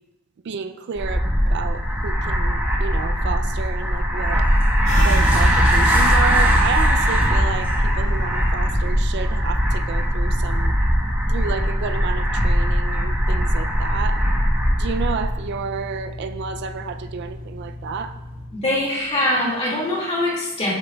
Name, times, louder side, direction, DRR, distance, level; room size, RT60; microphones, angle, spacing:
voice 1, 0.4-4.5 5.0-10.7 11.3-14.3 14.8-18.2, right 6 dB, 55° right, 9 dB, 0.3 m, -31 dB
sound 1, 1.0-15.4, equal, 10° right, 1.0 m, -20 dB
sound 2, 4.8-14.3 14.5-15.8 16.1-16.6 17.0-17.6, equal, 65° left, 1.9 m, -28 dB
sound 3, 5.2-18.5, left 1 dB, 75° right, 1.8 m, -36 dB
voice 2, 18.5-20.7, left 1 dB, 30° left, -4 dB, 2.1 m, -23 dB
8.8 x 7.3 x 2.3 m, 1.0 s
head